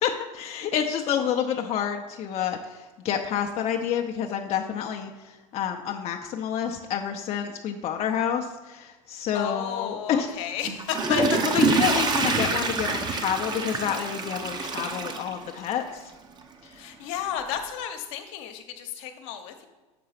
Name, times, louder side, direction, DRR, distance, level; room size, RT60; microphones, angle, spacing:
voice 1, 0.0-5.1 5.5-10.3 11.1-11.2 11.5-16.0 16.7-16.8, left 8 dB, 35° left, 3 dB, 0.7 m, -28 dB
voice 2, 9.3-11.2 16.8-19.7, left 9 dB, 60° left, 5 dB, 1.0 m, -33 dB
Water / Toilet flush, 10.6-15.9 16.4-16.5, right 4 dB, 25° right, 0.9 m, -26 dB
6.7 x 4.6 x 5.8 m, 1.2 s
hypercardioid pair, 95°, 18 cm